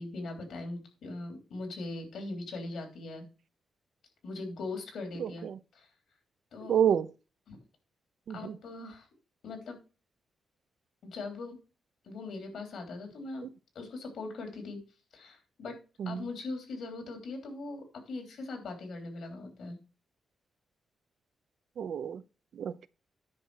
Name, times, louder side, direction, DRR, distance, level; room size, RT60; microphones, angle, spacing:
voice 1, 0.0-3.3 4.2-5.5 5.7-5.9 6.5-6.8 7.5-7.6 8.3-9.1 9.4-9.8 11.0-11.6 12.0-13.5 13.7-14.8 15.1-15.8 16.0-19.8, left 3 dB, 70° left, 3.3 m, -40 dB
voice 2, 5.2-5.6 6.7-7.1 8.3-8.6 16.0-16.2 21.8-22.2 22.5-22.9, right 9 dB, 65° right, 0.6 m, -29 dB
9.9 x 5.8 x 4.8 m
wide cardioid pair, 135°, 0 cm